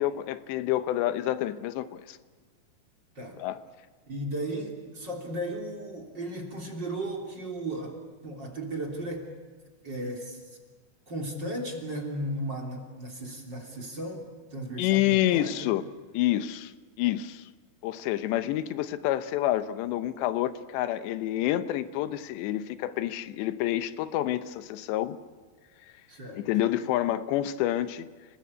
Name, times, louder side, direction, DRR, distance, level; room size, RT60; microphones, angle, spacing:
voice 1, 0.0-2.2 3.4-3.6 14.8-15.8 16.1-16.7 17.0-17.5 17.8-25.2 26.3-28.1, left 13 dB, 90° left, 12 dB, 3.2 m, -28 dB
voice 2, 4.1-8.0 8.2-9.3 9.8-10.6 11.1-15.7 26.1-26.4, right 1 dB, 25° right, 1 dB, 3.5 m, -35 dB
30.0 x 20.0 x 8.6 m, 1.5 s
omnidirectional pair, 4.9 m